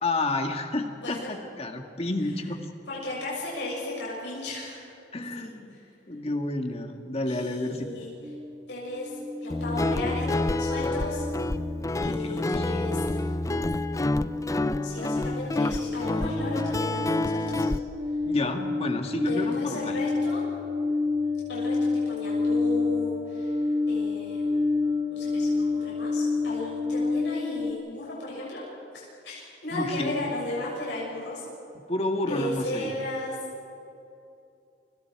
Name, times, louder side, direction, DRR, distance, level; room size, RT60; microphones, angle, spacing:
voice 1, 0.0-2.6 5.1-5.8 6.1-7.8 12.0-12.8 18.3-20.0 29.7-30.2 31.7-32.9, left 2 dB, 35° left, 4 dB, 1.8 m, -30 dB
voice 2, 2.9-4.8 5.3-5.5 7.3-8.1 8.7-9.1 9.4-11.3 12.0-13.2 14.8-17.7 19.2-20.4 21.5-23.5 23.9-24.5 25.1-28.6 28.9-31.4 32.3-33.3, left 1 dB, 85° left, -5 dB, 6.7 m, -35 dB
sound 1, 8.2-10.6 10.9-27.7, left 3 dB, 30° right, 1.8 m, -29 dB
Guitar, 9.5-17.8, left 2 dB, 20° left, 0.5 m, -28 dB
30.0 x 25.5 x 4.7 m, 2.7 s
head